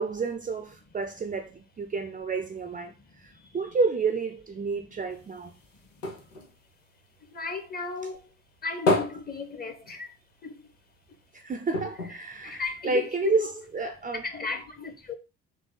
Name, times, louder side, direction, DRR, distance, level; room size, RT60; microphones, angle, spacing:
voice 1, 0.0-5.5 11.3-14.2, right 4 dB, 20° right, 0.5 m, -30 dB
sound 1, 5.1-7.8 8.1-10.4 10.7-10.8 11.1-11.2 11.7-13.2 13.8-13.9, left 2 dB, 90° left, 0.6 m, -32 dB
voice 2, 7.3-8.2 8.6-10.1 10.4-10.5 12.4-13.5 14.2-15.2, left 5 dB, 25° left, 0.9 m, -34 dB
3.8 x 3.2 x 3.8 m
figure-of-eight pair, 45°, 36 cm